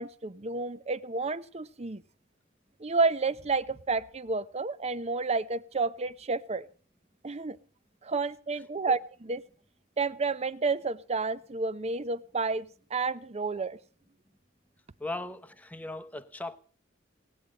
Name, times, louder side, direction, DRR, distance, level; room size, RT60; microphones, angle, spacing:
voice 1, 0.0-2.0 2.8-6.7 7.2-7.6 8.0-9.4 10.0-13.8, right 4 dB, 30° right, 0.7 m, -30 dB
voice 2, 15.0-16.6, left 2 dB, 10° left, 0.9 m, -38 dB
18.0 x 8.4 x 7.6 m
head